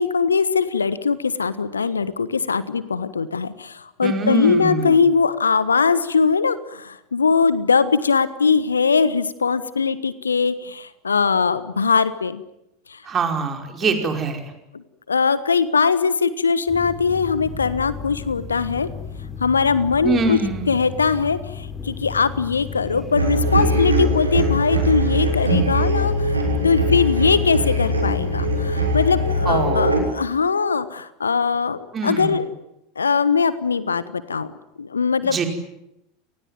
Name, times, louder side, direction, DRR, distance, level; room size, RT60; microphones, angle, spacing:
voice 1, 0.0-12.4 13.8-13.9 14.7-14.8 15.1-18.9 19.4-20.4 20.7-26.4 26.6-32.5 33.0-34.5 34.8-35.4, left 5 dB, 75° left, 15 dB, 1.3 m, -21 dB
voice 2, 4.0-5.0 13.1-14.4 20.0-20.7 29.5-29.9 31.9-32.3 35.3-35.5, right 3 dB, 25° right, 4 dB, 5.2 m, -23 dB
sound 1, 16.7-29.7, left 6 dB, 10° left, 5.1 m, -34 dB
sound 2, 23.1-30.0, right 1 dB, 80° right, 6.3 m, -21 dB
29.5 x 20.0 x 9.2 m, 0.86 s
figure-of-eight pair, 80°, 0 cm